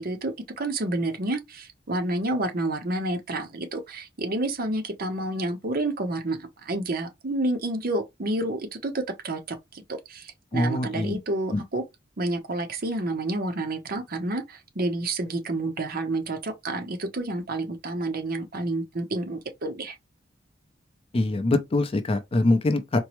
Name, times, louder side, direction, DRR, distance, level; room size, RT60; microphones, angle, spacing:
voice 1, 0.0-11.8 12.2-19.9, right 2 dB, 50° right, 0.8 m, -29 dB
voice 2, 10.5-11.2 11.5-11.6 21.1-23.0, left 2 dB, 30° left, 0.5 m, -23 dB
4.4 x 2.0 x 3.0 m
head